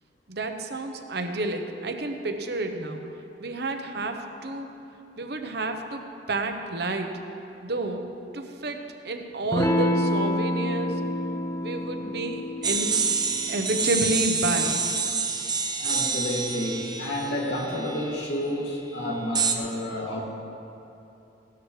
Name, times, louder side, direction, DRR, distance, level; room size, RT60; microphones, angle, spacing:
voice 1, 0.3-3.0 3.4-4.7 5.2-6.0 6.3-7.2 7.6-8.1 8.3-11.0 11.6-13.0 13.5-14.8, right 2 dB, 65° right, 5 dB, 1.0 m, -30 dB
Electric guitar / Strum, 9.5-14.6, left 1 dB, 15° left, 0.5 m, -28 dB
sound 1, 12.6-18.3 19.4-19.6, right 5 dB, 25° right, 0.9 m, -27 dB
voice 2, 15.8-20.2, left 1 dB, 80° left, -3 dB, 2.5 m, -30 dB
17.5 x 12.5 x 3.3 m, 2.9 s
head